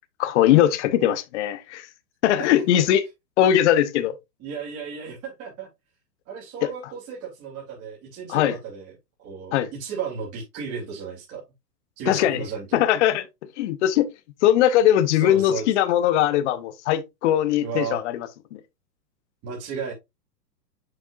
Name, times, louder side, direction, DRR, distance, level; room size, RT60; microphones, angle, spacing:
voice 1, 0.2-1.9 2.2-3.0 3.4-4.1 6.6-6.7 8.3-8.6 9.5-9.7 12.1-12.4 12.7-13.3 13.6-14.1 14.4-18.6, left 11 dB, 45° left, 0.9 m, -20 dB
voice 2, 2.4-2.8 4.4-5.7 6.3-8.9 9.2-11.4 12.0-12.8 15.2-15.6 17.6-18.0 19.4-19.9, right 6 dB, 30° right, 2.9 m, -34 dB
6.9 x 6.5 x 2.5 m
hypercardioid pair, 130°, 50 cm